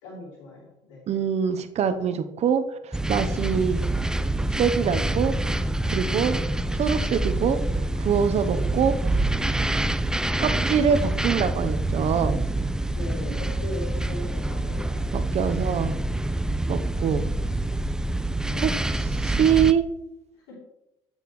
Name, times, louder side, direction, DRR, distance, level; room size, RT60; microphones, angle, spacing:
voice 1, 0.0-1.1 3.3-3.6 6.0-6.4 12.9-15.1 18.4-18.7 20.5-20.6, left 1 dB, 90° left, -7 dB, 3.1 m, -39 dB
voice 2, 1.1-3.9 4.6-5.3 5.9-6.4 6.7-7.6 8.0-9.2 10.4-12.4 15.1-16.0 16.7-17.3 18.6-18.7 19.1-19.9, right 7 dB, 55° right, 10 dB, 0.8 m, -24 dB
sound 1, 2.9-19.7, right 1 dB, 5° right, 0.3 m, -26 dB
8.9 x 7.1 x 3.1 m, 0.90 s
supercardioid pair, 85°, 14 cm